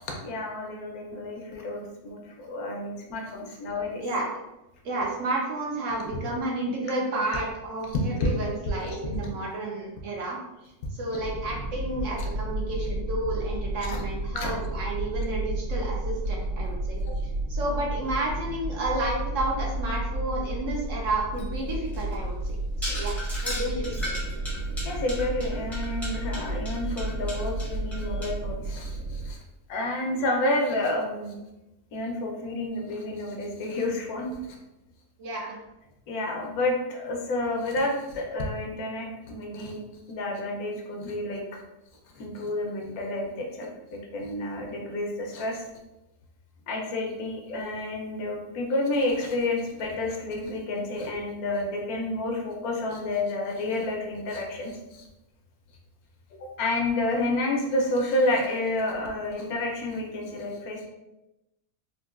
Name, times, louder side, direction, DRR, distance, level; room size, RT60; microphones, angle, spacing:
voice 1, 0.2-4.0 7.9-8.3 8.8-9.3 13.9-14.0 14.3-14.5 17.0-17.2 24.8-29.4 29.7-31.3 31.9-34.3 36.1-39.8 40.1-41.4 42.1-45.6 46.7-55.1 56.4-60.9, left 2 dB, 75° left, 1 dB, 1.1 m, -30 dB
voice 2, 4.8-10.4 10.9-22.5 22.8-23.2 23.4-24.1 35.2-35.6, right 2 dB, 65° right, -2 dB, 0.8 m, -31 dB
sound 1, 11.2-29.3, right 1 dB, 85° right, 1.3 m, -32 dB
sound 2, 21.4-28.3, left 1 dB, ahead, 0.5 m, -37 dB
3.7 x 2.4 x 2.4 m, 0.96 s
omnidirectional pair, 1.6 m